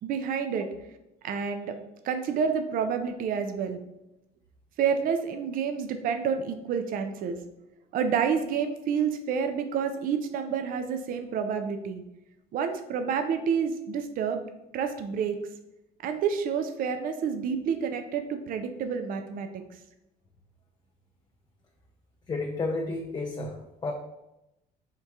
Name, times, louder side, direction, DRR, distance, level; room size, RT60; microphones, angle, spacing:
voice 1, 0.0-0.7 1.2-1.8 2.0-3.8 4.8-7.4 7.9-12.0 12.5-14.4 14.7-15.4 16.0-19.5 23.4-23.5, right 6 dB, 55° right, 7 dB, 0.4 m, -29 dB
voice 2, 22.3-23.9, left 3 dB, 25° left, 2 dB, 0.5 m, -32 dB
3.6 x 2.7 x 4.5 m, 0.90 s
cardioid pair, 110°, 17 cm